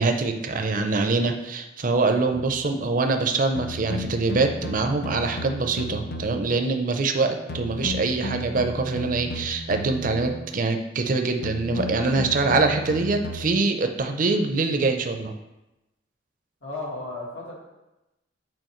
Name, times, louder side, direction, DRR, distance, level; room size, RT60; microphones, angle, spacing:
voice 1, 0.0-15.3, right 3 dB, 45° right, 6 dB, 0.5 m, -24 dB
sound 1, 2.3-2.6 3.6-6.6 7.5-10.5 11.4-13.6, left 1 dB, 55° left, 0.6 m, -34 dB
voice 2, 16.6-17.5, left 2 dB, 75° left, -4 dB, 1.8 m, -34 dB
7.7 x 4.6 x 3.1 m, 0.98 s
head